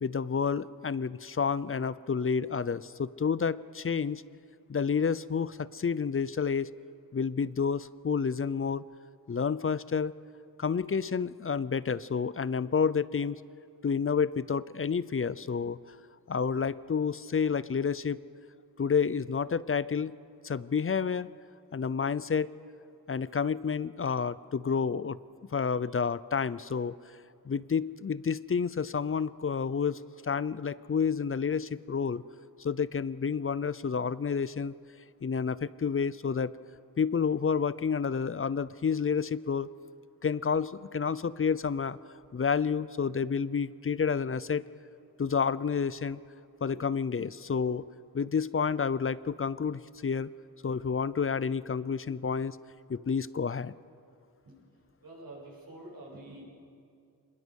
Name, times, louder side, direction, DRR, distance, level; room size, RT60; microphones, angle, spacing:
voice 1, 0.0-4.2 4.7-6.7 7.1-8.8 9.3-10.1 10.6-13.4 13.8-15.8 16.3-18.2 18.8-20.2 20.4-21.3 21.7-22.5 23.1-25.2 25.5-26.9 27.5-32.2 32.6-34.7 35.2-36.5 37.0-39.7 40.2-42.0 42.3-44.6 45.2-46.2 46.6-47.8 48.1-50.3 50.6-52.6 52.9-53.7, left 6 dB, 35° left, 18 dB, 0.6 m, -29 dB
voice 2, 55.0-56.4, right 1 dB, 70° right, -4 dB, 8.0 m, -47 dB
25.5 x 21.0 x 6.4 m, 2.4 s
wide cardioid pair, 80°, 37 cm